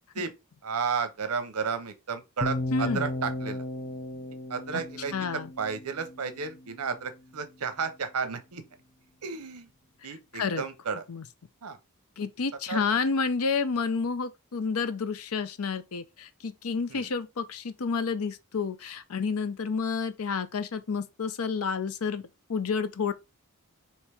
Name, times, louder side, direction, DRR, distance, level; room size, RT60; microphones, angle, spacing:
voice 1, 0.6-3.6 4.5-8.6 9.2-9.7 10.0-11.0 11.6-11.8 12.7-12.8 16.9-17.1, right 5 dB, 90° right, 0.8 m, -33 dB
sound 1, 2.4-6.5, left 2 dB, 30° left, 0.5 m, -35 dB
voice 2, 2.7-3.1 4.7-4.8 5.1-5.5 10.0-10.6 11.1-11.2 12.2-23.1, left 5 dB, 75° left, 0.6 m, -30 dB
4.5 x 3.0 x 3.4 m
head